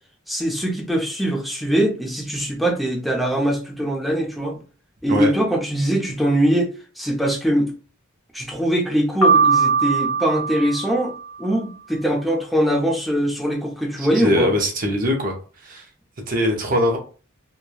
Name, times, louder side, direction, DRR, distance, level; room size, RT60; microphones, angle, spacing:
voice 1, 0.3-4.6 5.0-6.7 7.0-7.7 8.3-11.1 11.4-14.5, right 1 dB, ahead, 0.5 m, -22 dB
Piano, 9.2-11.4, right 5 dB, 75° left, 1.1 m, -20 dB
voice 2, 14.0-15.4 15.6-15.8 16.3-17.0, left 1 dB, 45° right, 0.6 m, -21 dB
3.0 x 2.2 x 2.2 m
head